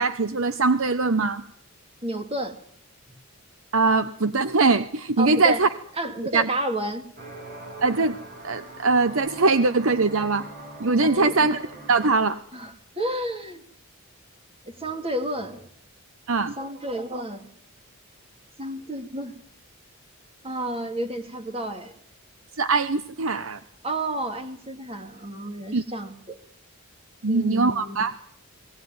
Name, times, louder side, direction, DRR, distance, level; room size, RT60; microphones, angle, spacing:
voice 1, 0.0-1.4 3.7-5.7 6.3-6.5 7.8-8.2 8.4-10.5 10.8-12.4 16.3-16.5 22.6-23.6 25.7-25.8 27.2-28.1, right 3 dB, 60° right, 12 dB, 0.9 m, -22 dB
voice 2, 2.0-2.6 5.2-5.6 6.0-7.1 11.0-11.5 12.5-13.6 14.7-15.7 16.6-17.5 18.6-19.3 20.4-21.9 23.8-26.4 27.3-28.0, right 1 dB, 25° right, 6 dB, 2.7 m, -31 dB
sound 1, 7.2-12.3, right 1 dB, 40° right, 6.1 m, -42 dB
20.0 x 17.5 x 9.4 m, 0.63 s
head